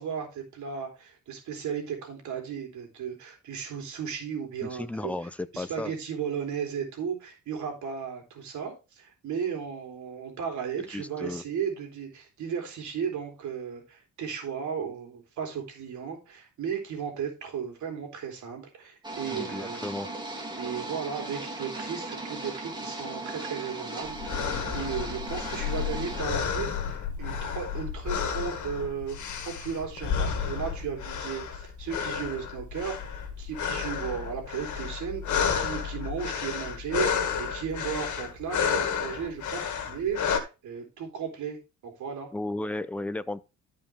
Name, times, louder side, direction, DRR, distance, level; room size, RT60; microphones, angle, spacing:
voice 1, 0.0-5.1 5.5-19.9 20.6-29.2 29.4-41.6 41.8-42.3, right 7 dB, 70° right, 3.3 m, -35 dB
voice 2, 4.6-5.9 10.9-11.4 19.3-20.1 42.3-43.4, left 2 dB, 5° left, 0.5 m, -34 dB
sound 1, 19.0-26.2, right 2 dB, 15° right, 2.7 m, -37 dB
sound 2, 24.1-40.4, left 7 dB, 70° left, 2.0 m, -31 dB
13.5 x 5.3 x 3.5 m
cardioid pair, 145°, 31 cm